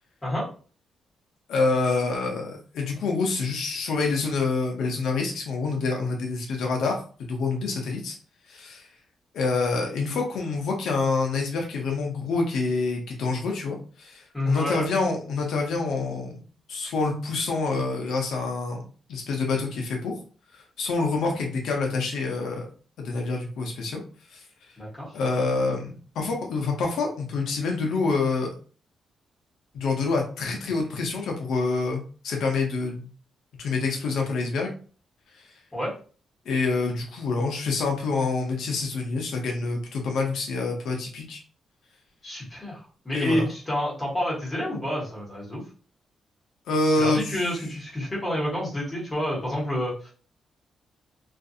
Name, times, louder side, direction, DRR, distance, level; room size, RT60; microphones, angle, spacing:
voice 1, 1.5-8.2 8.5-8.9 9.3-16.4 16.7-18.8 19.1-20.2 20.5-22.7 23.0-24.0 24.3-24.4 25.1-28.5 29.7-33.1 33.6-34.7 35.4-35.5 36.5-41.4 43.1-43.5 46.7-47.5, left 3 dB, 80° left, 1 dB, 0.6 m, -27 dB
voice 2, 14.3-14.9 24.8-25.1 35.7-35.9 42.2-42.8 43.0-45.6 47.0-50.1, left 1 dB, 15° left, -6 dB, 1.2 m, -29 dB
2.5 x 2.4 x 2.6 m, 0.40 s
wide cardioid pair, 165°, 0 cm